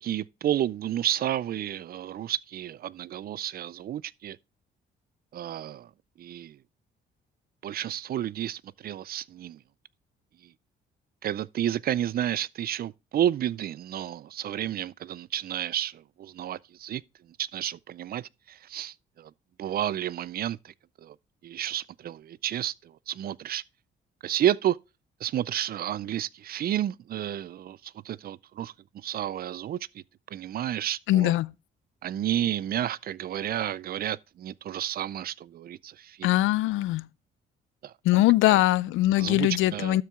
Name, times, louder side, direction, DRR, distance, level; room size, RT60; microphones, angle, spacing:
voice 1, 0.0-4.4 5.3-5.9 6.2-6.6 7.6-9.6 11.2-17.0 17.4-19.3 19.6-21.2 21.4-23.6 24.2-24.8 25.2-30.0 30.3-31.3 32.0-36.3 37.8-37.9 38.5-38.6 39.2-40.0, right 11 dB, 50° right, 0.4 m, -31 dB
voice 2, 31.1-31.5 36.2-37.1 38.0-40.0, left 16 dB, 85° left, 0.4 m, -22 dB
12.5 x 4.6 x 3.6 m
cardioid pair, 90°, 20 cm